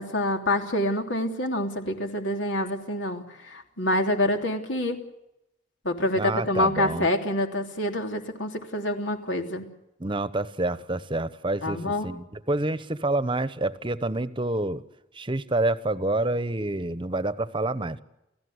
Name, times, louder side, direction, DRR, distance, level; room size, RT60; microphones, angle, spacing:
voice 1, 0.0-5.0 5.8-9.6 11.6-12.1, left 1 dB, 85° left, 4 dB, 3.3 m, -27 dB
voice 2, 6.1-7.1 10.0-14.8 15.1-18.0, right 2 dB, 25° right, 14 dB, 1.0 m, -28 dB
29.5 x 16.0 x 7.9 m, 0.91 s
head